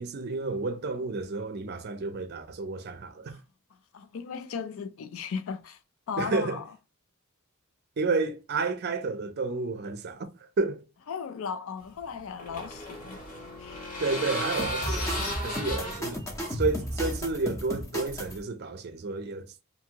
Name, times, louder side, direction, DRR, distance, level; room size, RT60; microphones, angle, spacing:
voice 1, 0.0-3.4 6.2-6.6 8.0-10.3 10.6-10.8 14.0-16.2 16.5-19.6, right 3 dB, 50° right, 0.5 m, -31 dB
voice 2, 3.9-5.8 6.1-6.6 11.1-13.2 13.6-13.8, left 6 dB, 70° left, 0.4 m, -36 dB
sound 1, 11.8-17.4, left 1 dB, 40° left, 0.9 m, -36 dB
sound 2, 14.6-18.4, equal, 15° left, 0.6 m, -34 dB
2.7 x 2.6 x 2.8 m
head